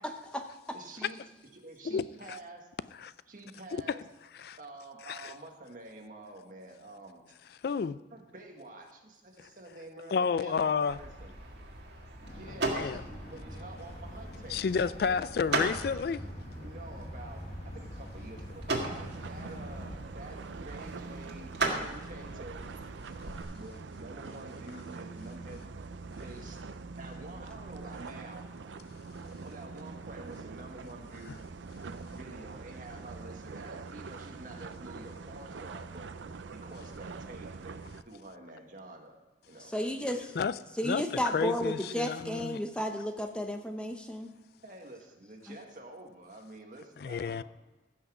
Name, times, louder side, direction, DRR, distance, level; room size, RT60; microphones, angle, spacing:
voice 1, 0.7-1.2 1.6-2.7 3.3-4.0 4.6-7.2 8.1-11.3 12.3-15.3 16.6-22.6 23.5-25.7 26.2-26.6 27.0-28.5 29.4-31.4 32.1-36.1 36.5-37.8 38.1-39.2 39.5-40.2 44.6-47.4, right 2 dB, 45° right, 1.7 m, -48 dB
voice 2, 7.6-8.0 10.1-11.0 12.7-13.0 14.5-16.2 40.4-40.5 40.8-42.6 47.0-47.4, left 6 dB, 55° left, 0.3 m, -30 dB
sound 1, 10.9-23.4, right 2 dB, 70° right, 1.8 m, -38 dB
sound 2, 12.2-20.0, equal, 40° left, 1.3 m, -45 dB
sound 3, 18.9-38.0, right 4 dB, 90° right, 0.5 m, -44 dB
voice 3, 39.7-40.2 40.8-44.3, equal, 5° left, 0.7 m, -32 dB
16.0 x 6.1 x 4.9 m
head